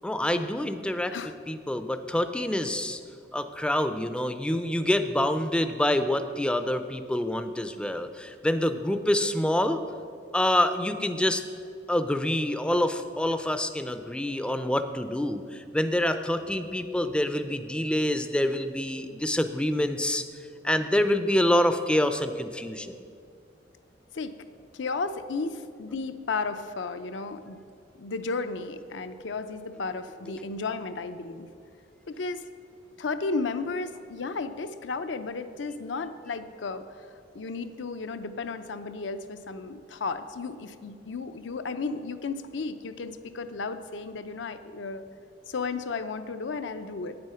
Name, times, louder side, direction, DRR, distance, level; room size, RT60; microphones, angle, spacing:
voice 1, 0.0-1.2 1.5-3.0 3.3-9.8 10.3-11.4 11.9-20.2 20.6-23.0, left 1 dB, 5° left, 9 dB, 0.4 m, -26 dB
voice 2, 24.7-27.6 28.0-31.5 32.1-32.4 33.0-36.8 37.3-45.0 45.5-47.2, left 4 dB, 80° left, 10 dB, 0.5 m, -33 dB
9.1 x 7.8 x 5.6 m, 2.3 s
head